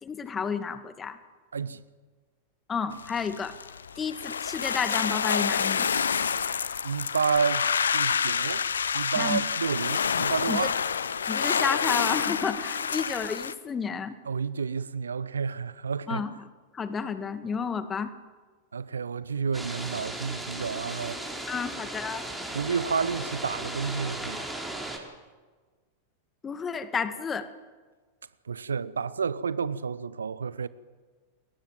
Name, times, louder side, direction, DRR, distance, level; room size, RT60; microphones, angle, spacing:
voice 1, 0.0-1.2 2.7-3.5 4.0-5.9 9.2-9.4 10.5-10.7 11.3-14.2 16.1-16.3 16.7-18.1 21.5-22.3 26.4-27.5, left 6 dB, 20° left, 2.0 m, -31 dB
sound 1, 2.9-13.5, left 7 dB, 70° left, 0.9 m, -28 dB
voice 2, 6.8-7.7 7.9-8.7 8.9-10.7 14.2-16.2 18.7-21.2 22.5-24.5 28.5-30.7, right 6 dB, 70° right, 0.9 m, -30 dB
sound 2, 19.5-25.0, right 1 dB, 5° right, 4.9 m, -36 dB
29.0 x 22.0 x 7.6 m
figure-of-eight pair, 90°, 0 cm